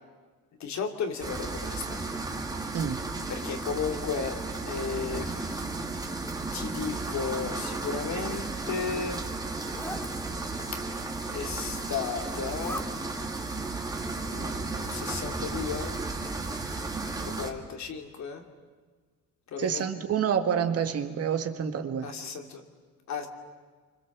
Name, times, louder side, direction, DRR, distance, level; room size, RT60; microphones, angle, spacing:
voice 1, 0.6-2.0 3.3-4.4 4.7-5.6 6.5-9.4 11.3-12.8 14.2-16.0 17.2-18.4 19.5-19.8 22.0-22.6 23.1-23.3, left 6 dB, 60° left, 4 dB, 3.0 m, -34 dB
sound 1, 1.2-17.5, right 3 dB, 10° right, 2.2 m, -34 dB
Zipper (clothing), 8.2-9.0 9.6-10.1 11.2-11.9 12.3-12.9, equal, 10° left, 1.9 m, -41 dB
voice 2, 19.6-22.1, right 8 dB, 50° right, 7 dB, 1.8 m, -28 dB
29.0 x 25.5 x 7.4 m, 1.5 s
cardioid pair, 155°, 31 cm